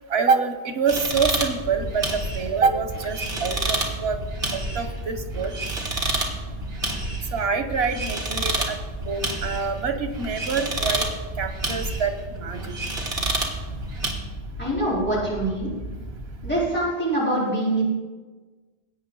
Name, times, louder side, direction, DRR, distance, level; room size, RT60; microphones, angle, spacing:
voice 1, 0.1-4.2 4.5-5.5 7.3-8.8 9.0-11.0 11.4-12.6, right 5 dB, 90° right, 7 dB, 1.3 m, -26 dB
sound 1, 0.9-14.1, right 2 dB, 55° right, 2.0 m, -30 dB
sound 2, 1.0-16.7, right 1 dB, 55° left, 3.6 m, -37 dB
voice 2, 14.6-15.7 16.4-17.8, right 1 dB, 10° left, -8 dB, 4.1 m, -24 dB
17.5 x 8.5 x 3.9 m, 1.3 s
omnidirectional pair, 1.0 m